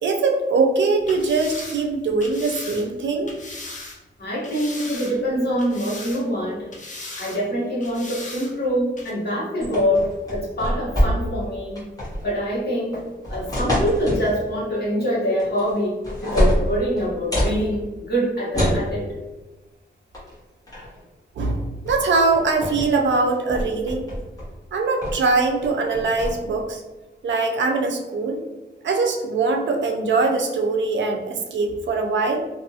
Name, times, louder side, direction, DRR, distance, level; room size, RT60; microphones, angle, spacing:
voice 1, 0.0-3.3 21.4-24.1 24.7-26.8 27.2-28.4 28.8-32.4, right 3 dB, 75° right, 3 dB, 0.4 m, -22 dB
sound 1, 1.0-4.0 4.4-5.3 5.6-6.4 6.7-7.4 7.8-8.5 9.0-9.1, left 2 dB, 45° left, 0.5 m, -38 dB
voice 2, 4.2-6.7 7.2-11.9 12.2-13.0 13.3-19.1, equal, 60° left, -7 dB, 1.2 m, -24 dB
sound 2, 9.6-11.4 11.8-12.3 12.9-14.4 15.4-15.8 16.0-17.6 18.5-18.9 20.1-20.3 20.7-21.0 21.9-22.0 22.3-22.9 23.3-24.5 25.0-25.3 25.6-26.3, equal, 20° left, 1.0 m, -25 dB
2.6 x 2.3 x 2.7 m, 1.1 s
wide cardioid pair, 160°, 19 cm